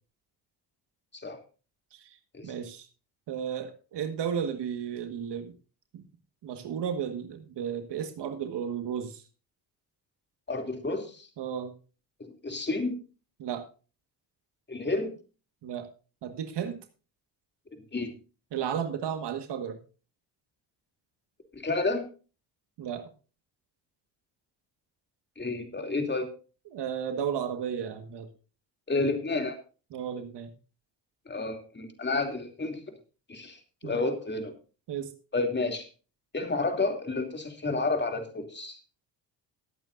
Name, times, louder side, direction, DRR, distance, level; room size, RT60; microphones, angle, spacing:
voice 1, 2.4-2.9 3.3-5.5 5.9-6.0 6.4-9.2 11.4-11.7 13.4-13.6 15.6-15.9 16.2-16.8 18.5-19.8 22.8-23.0 26.7-28.3 29.9-30.5 33.8-34.0 34.9-35.1, right 8 dB, 60° right, 7 dB, 1.7 m, -33 dB
voice 2, 10.5-11.3 12.2-12.9 14.7-15.1 17.9-18.1 21.5-22.0 25.4-26.3 28.9-29.6 31.3-32.8 33.3-34.5 35.3-35.9 36.3-38.8, left 3 dB, 25° left, 5 dB, 2.8 m, -30 dB
18.0 x 8.9 x 2.6 m, 0.34 s
supercardioid pair, 70°, 46 cm